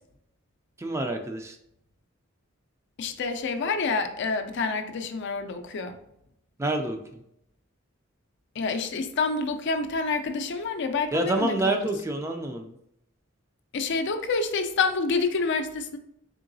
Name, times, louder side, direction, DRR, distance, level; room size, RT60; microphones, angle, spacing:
voice 1, 0.8-1.6 6.6-7.0 11.1-12.7, right 2 dB, 15° right, 4 dB, 0.3 m, -27 dB
voice 2, 3.0-6.0 8.6-11.8 13.7-16.0, left 4 dB, 60° left, 7 dB, 0.4 m, -28 dB
3.8 x 3.7 x 2.6 m, 0.76 s
head